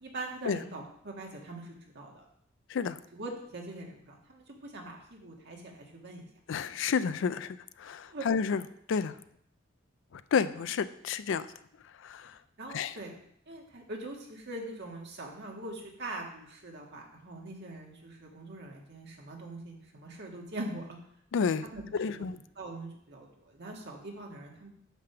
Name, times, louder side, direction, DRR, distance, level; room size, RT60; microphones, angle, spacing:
voice 1, 0.0-2.3 3.1-6.3 8.1-8.3 12.6-13.2 13.5-21.0 21.6-21.8 22.2-24.7, right 2 dB, 60° right, 0 dB, 1.6 m, -42 dB
voice 2, 6.5-8.6 8.9-9.2 10.1-11.5 12.0-12.4 12.7-13.0 21.3-21.6 21.9-22.4, left 6 dB, 65° left, 14 dB, 0.4 m, -30 dB
9.2 x 3.5 x 6.7 m, 0.70 s
head